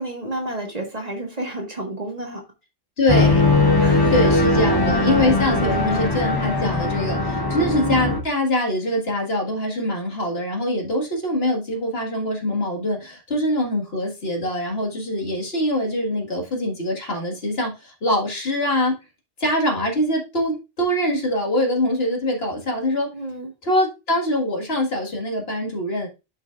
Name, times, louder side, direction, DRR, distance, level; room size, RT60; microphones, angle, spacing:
voice 1, 0.0-2.4 3.8-4.3 7.5-8.0 23.1-23.5, right 1 dB, 35° right, 2 dB, 1.6 m, -31 dB
voice 2, 3.0-3.5 4.1-19.0 19.4-23.1 23.6-26.1, left 1 dB, 60° left, 0 dB, 2.0 m, -23 dB
sound 1, 3.1-8.2, left 2 dB, 20° left, 1.1 m, -19 dB
10.5 x 5.6 x 2.4 m, 0.27 s
omnidirectional pair, 1.2 m